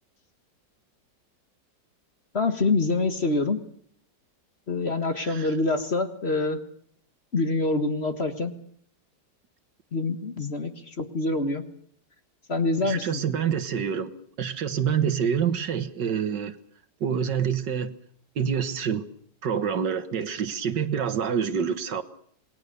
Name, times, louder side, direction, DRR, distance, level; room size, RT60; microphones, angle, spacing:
voice 1, 2.3-3.6 4.7-6.6 7.3-8.5 9.9-11.6 12.5-13.2, left 3 dB, 35° left, 8 dB, 1.7 m, -26 dB
voice 2, 5.2-5.5 12.8-14.1 14.4-16.6 17.0-17.9 18.4-19.1 19.4-22.0, right 7 dB, 70° right, 11 dB, 2.0 m, -27 dB
27.5 x 20.0 x 6.8 m, 0.62 s
omnidirectional pair, 2.0 m